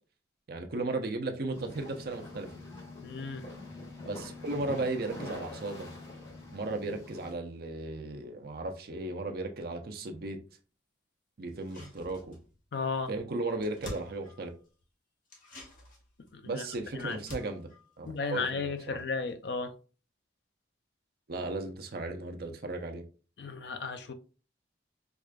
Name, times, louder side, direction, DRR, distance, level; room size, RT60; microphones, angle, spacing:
voice 1, 0.5-2.5 4.1-5.9 6.5-10.4 11.4-12.4 13.1-14.5 16.4-17.7 18.0-19.0 21.3-23.0, right 2 dB, 55° right, 0.5 m, -35 dB
sound 1, 1.5-7.3, left 2 dB, 80° left, 1.4 m, -45 dB
voice 2, 3.0-3.4 12.7-13.1 16.3-16.7 17.0-17.2 18.0-19.7 23.4-24.1, left 4 dB, 60° left, 0.4 m, -34 dB
sound 2, 11.5-12.7 12.9-13.0 13.3-14.8 15.3-19.0 19.3-19.4, left 1 dB, 45° left, 1.0 m, -49 dB
4.8 x 2.4 x 2.2 m
head